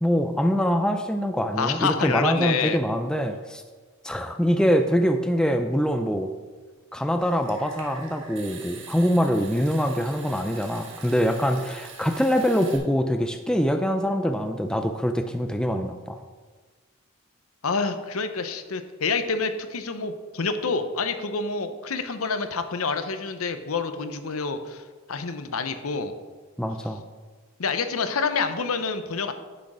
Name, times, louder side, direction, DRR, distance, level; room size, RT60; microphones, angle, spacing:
voice 1, 0.0-3.6 4.0-6.3 6.9-16.2 26.6-27.0, equal, 5° left, 6 dB, 0.4 m, -24 dB
voice 2, 1.6-2.8 17.6-24.8 25.1-26.1 27.6-29.3, left 4 dB, 85° left, 9 dB, 0.8 m, -27 dB
Water tap faucet / Sink (filling or washing) / Trickle dribble, 7.2-12.8, right 5 dB, 60° right, 1.5 m, -44 dB
10.0 x 6.3 x 4.9 m, 1.4 s
head